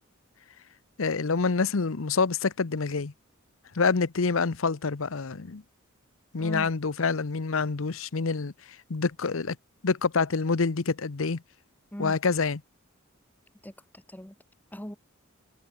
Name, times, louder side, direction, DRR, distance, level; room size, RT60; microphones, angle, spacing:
voice 1, 1.0-3.1 3.7-5.6 6.3-8.5 8.9-9.6 9.8-11.4 12.0-12.6, left 4 dB, 70° left, 0.8 m, -27 dB
voice 2, 6.4-6.7 11.9-12.1 13.6-14.3 14.7-15.0, equal, 10° left, 2.4 m, -39 dB
head